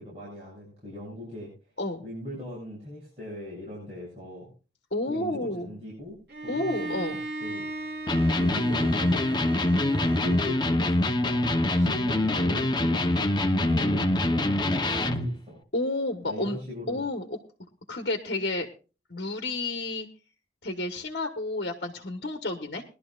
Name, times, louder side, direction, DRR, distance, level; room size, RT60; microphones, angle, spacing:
voice 1, 0.0-1.7 2.0-4.5 5.1-7.7 8.3-9.5 10.1-15.6 16.2-17.0, left 1 dB, 35° right, -6 dB, 7.9 m, -40 dB
voice 2, 4.9-5.7 6.5-7.2 15.7-16.6 16.9-17.4 17.9-18.7 19.1-20.1 20.6-22.8, left 2 dB, 60° left, 5 dB, 1.4 m, -30 dB
Bowed string instrument, 6.3-10.7, right 1 dB, 65° right, 2.6 m, -37 dB
Electric guitar, 8.1-15.4, left 1 dB, 25° left, 0.9 m, -24 dB
21.5 x 12.0 x 2.5 m, 0.34 s
head